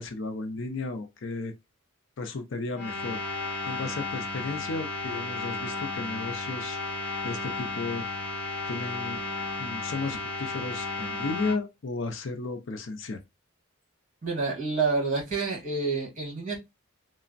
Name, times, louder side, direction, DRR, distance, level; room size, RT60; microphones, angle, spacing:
voice 1, 0.0-1.5 2.2-3.2 3.7-6.8 7.2-8.1 8.7-9.2 9.6-13.2, left 3 dB, 60° left, 0.5 m, -34 dB
sound 1, 2.7-11.6, left 3 dB, 5° left, 1.3 m, -33 dB
voice 2, 14.2-16.6, right 4 dB, 35° right, 1.6 m, -28 dB
3.2 x 2.0 x 2.4 m
head